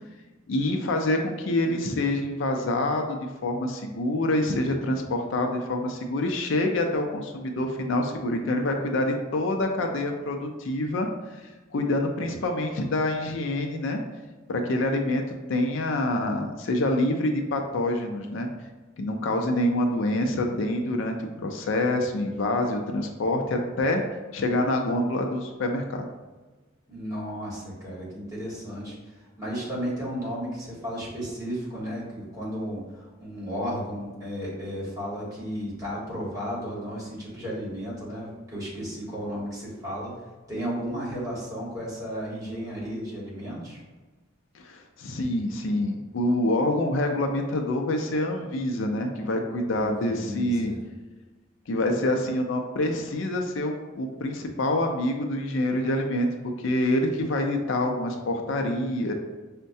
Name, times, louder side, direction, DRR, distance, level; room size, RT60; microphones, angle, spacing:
voice 1, 0.5-11.1 11.7-14.0 14.5-15.2 15.5-18.5 19.0-24.0 24.3-26.1 44.5-50.7 51.7-56.3 56.6-59.1, left 1 dB, 75° left, 3 dB, 0.5 m, -26 dB
voice 2, 26.9-40.1 40.5-43.8 49.7-50.8, equal, 15° right, -7 dB, 1.4 m, -34 dB
5.4 x 2.1 x 2.6 m, 1.3 s
head